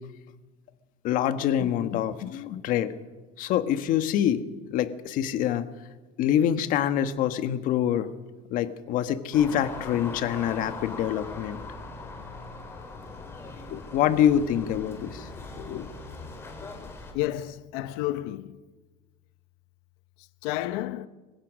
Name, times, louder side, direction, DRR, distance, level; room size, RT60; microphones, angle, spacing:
voice 1, 1.0-2.9 3.4-4.4 4.7-5.7 6.2-8.1 8.5-11.6 13.7-15.9, left 10 dB, 55° left, 1.5 m, -25 dB
sound 1, 9.3-17.1, left 3 dB, 15° left, 4.0 m, -40 dB
voice 2, 17.1-18.6 20.2-21.1, left 15 dB, 85° left, 0.9 m, -31 dB
25.5 x 16.0 x 6.4 m
cardioid pair, 145°, 16 cm